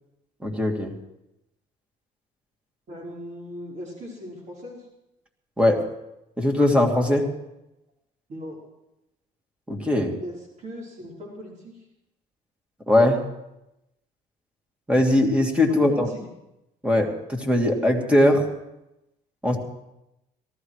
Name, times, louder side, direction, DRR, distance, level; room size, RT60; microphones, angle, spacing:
voice 1, 0.4-0.9 5.6-5.8 6.4-7.3 9.7-10.1 12.9-13.2 14.9-16.1 16.8-18.4 19.4-19.6, left 1 dB, 5° right, 2 dB, 2.6 m, -20 dB
voice 2, 2.9-4.9 8.3-8.6 10.2-11.9 15.7-16.3, equal, 45° right, -3 dB, 5.3 m, -39 dB
18.5 x 14.5 x 4.9 m, 0.89 s
cardioid pair, 110°, 17 cm